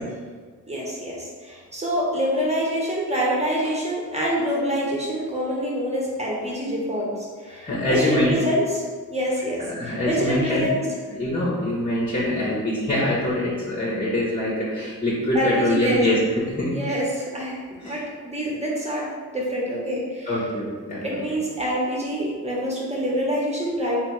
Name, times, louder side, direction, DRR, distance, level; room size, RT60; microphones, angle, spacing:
voice 1, 0.7-8.8 9.1-10.8 15.3-16.0 16.7-19.1 19.3-20.3 21.0-24.0, equal, 15° right, -5 dB, 1.4 m, -26 dB
voice 2, 7.6-8.4 9.6-10.7 11.1-17.0 17.8-18.0 20.3-21.2, left 1 dB, 20° left, -7 dB, 1.2 m, -24 dB
3.3 x 3.3 x 3.3 m, 1.5 s
supercardioid pair, 50°, 42 cm